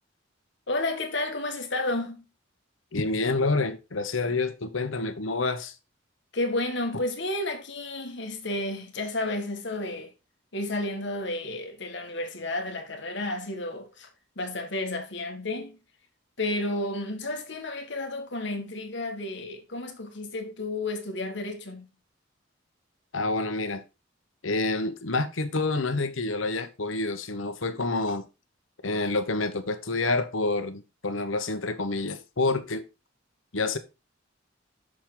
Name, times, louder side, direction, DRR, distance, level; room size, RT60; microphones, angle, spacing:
voice 1, 0.7-2.2 6.3-10.1 10.5-14.1 14.4-15.8 16.4-21.9, left 2 dB, 65° left, 1.9 m, -31 dB
voice 2, 2.9-5.7 6.9-7.0 23.1-23.8 24.4-28.3 28.8-32.8 33.5-33.8, left 3 dB, 90° left, 1.2 m, -28 dB
7.4 x 6.5 x 3.9 m
head